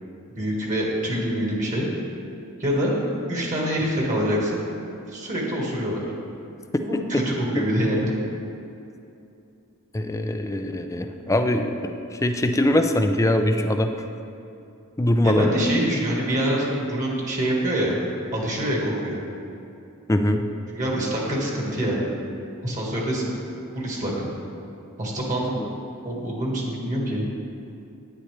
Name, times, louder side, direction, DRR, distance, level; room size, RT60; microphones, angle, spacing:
voice 1, 0.3-1.9 2.6-2.9 3.3-4.6 5.1-6.1 6.8-8.1 15.2-18.0 18.3-19.2 20.7-22.0 22.6-23.3 23.7-24.3 25.0-25.5 26.0-27.3, right 1 dB, 35° right, -3 dB, 1.7 m, -25 dB
voice 2, 9.9-13.9 15.0-15.5 20.1-20.4 25.6-25.7, left 1 dB, 15° left, 6 dB, 0.4 m, -22 dB
10.0 x 9.6 x 3.3 m, 2.6 s
head